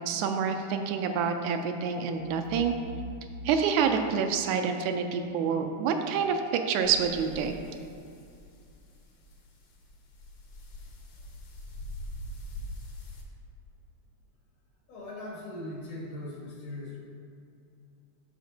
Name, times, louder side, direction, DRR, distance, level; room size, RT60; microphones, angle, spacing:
voice 1, 0.0-2.7 3.5-7.5, right 6 dB, 80° right, 5 dB, 2.0 m, -27 dB
sound 1, 2.2-5.0, left 1 dB, 60° right, 0.6 m, -44 dB
sound 2, 6.8-13.2, left 1 dB, 70° left, 1.1 m, -44 dB
voice 2, 14.9-17.0, left 1 dB, 90° left, -6 dB, 3.7 m, -39 dB
13.5 x 5.1 x 2.8 m, 2.5 s
omnidirectional pair, 3.5 m